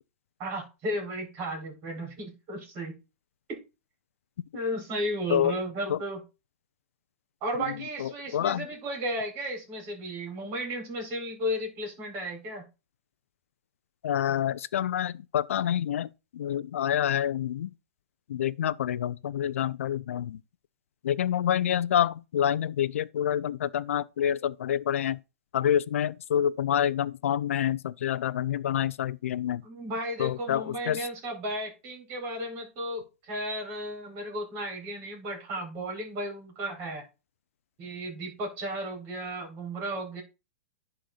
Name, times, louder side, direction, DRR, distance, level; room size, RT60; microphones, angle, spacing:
voice 1, 0.4-2.9 3.5-3.6 4.5-6.2 7.4-12.6 29.6-37.0 37.8-40.2, equal, 35° right, 4.4 m, -34 dB
voice 2, 8.0-8.7 14.0-17.7 18.3-20.4 21.0-25.2 25.5-29.6 30.2-31.1, left 10 dB, 75° left, 0.6 m, -27 dB
11.5 x 4.4 x 3.9 m
hypercardioid pair, 135°, 7 cm